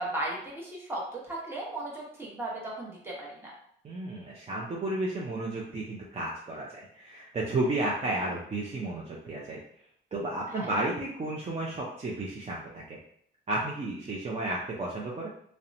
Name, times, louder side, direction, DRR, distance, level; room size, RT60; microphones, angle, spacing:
voice 1, 0.0-3.5 10.5-10.7, right 1 dB, 10° right, -5 dB, 0.9 m, -36 dB
voice 2, 3.8-9.6 10.1-12.8 13.5-15.3, right 2 dB, 30° right, -4 dB, 0.5 m, -32 dB
2.7 x 2.1 x 2.5 m, 0.66 s
cardioid pair, 90°, 20 cm